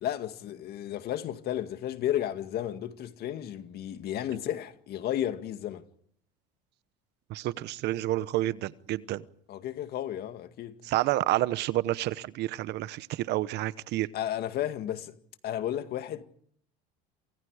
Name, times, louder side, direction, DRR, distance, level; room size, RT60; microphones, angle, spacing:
voice 1, 0.0-5.8 9.5-10.8 14.1-15.1 15.4-16.2, left 11 dB, 55° left, 2.1 m, -33 dB
voice 2, 7.3-9.2 10.8-14.1, right 15 dB, 60° right, 1.0 m, -29 dB
28.5 x 27.5 x 5.0 m
supercardioid pair, 110°, 20 cm